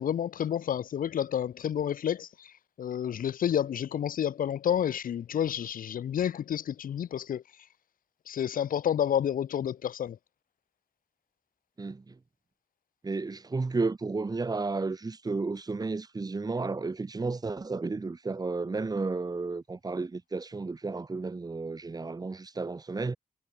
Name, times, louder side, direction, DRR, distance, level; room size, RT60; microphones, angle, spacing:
voice 1, 0.0-2.5 2.8-7.4 8.3-10.2, left 9 dB, 85° left, 2.6 m, -30 dB
voice 2, 11.8-12.2 13.0-23.2, right 3 dB, 30° right, 2.6 m, -32 dB
wide cardioid pair, 115°, 14 cm